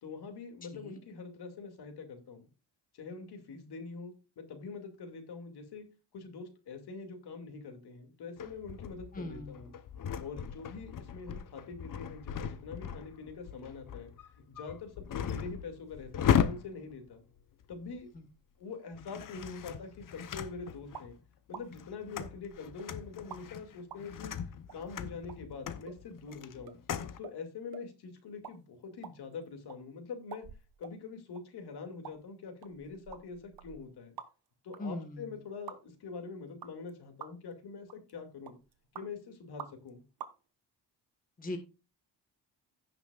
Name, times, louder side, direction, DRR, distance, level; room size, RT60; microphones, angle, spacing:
voice 1, 0.0-2.5 2.9-5.9 6.1-9.7 10.2-14.1 14.5-17.2 17.7-18.1 18.6-21.2 21.5-24.4 24.7-26.8 27.2-30.4 30.8-34.2 34.6-38.6 38.9-40.0, left 4 dB, 65° left, 5 dB, 2.5 m, -44 dB
sound 1, 8.4-18.2 18.9-21.1 21.5-27.2, left 8 dB, 50° left, 0.8 m, -37 dB
voice 2, 9.1-9.5 18.1-18.2 34.8-35.3 41.4-41.6, left 1 dB, 20° left, 5 dB, 1.4 m, -40 dB
sound 2, 20.9-21.1 21.5-21.6 22.2-22.9 23.3-23.4 23.9-24.0 24.7-24.8 25.3-25.4 25.8-26.0 26.3-26.4 26.6-26.8 27.2-27.4 27.7-27.9 28.2-28.6 28.8-29.8 30.3-31.0 31.3-31.4 32.0-32.2 32.6-34.5 34.7-34.8 35.7-35.8 36.6-36.9 37.2-37.5 37.9-38.1 38.4-39.1 39.6-39.9 40.2-40.3, right 8 dB, 60° right, 1.3 m, -47 dB
16.0 x 5.9 x 2.4 m, 0.31 s
cardioid pair, 140°, 41 cm